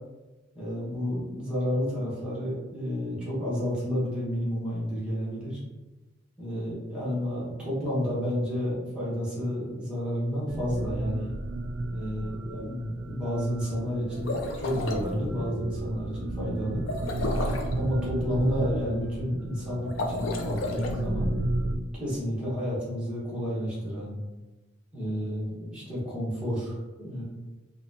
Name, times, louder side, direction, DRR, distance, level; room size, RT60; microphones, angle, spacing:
voice 1, 0.5-5.6 6.4-11.3 11.9-16.9 17.7-21.3 22.0-24.2 24.9-27.2, equal, 5° right, -8 dB, 1.1 m, -30 dB
sound 1, 10.5-21.8, right 1 dB, 65° right, 0.4 m, -33 dB
sound 2, 14.1-15.0 16.9-17.7 19.9-21.0, left 2 dB, 85° left, 0.4 m, -32 dB
4.0 x 2.3 x 2.6 m, 1.2 s
head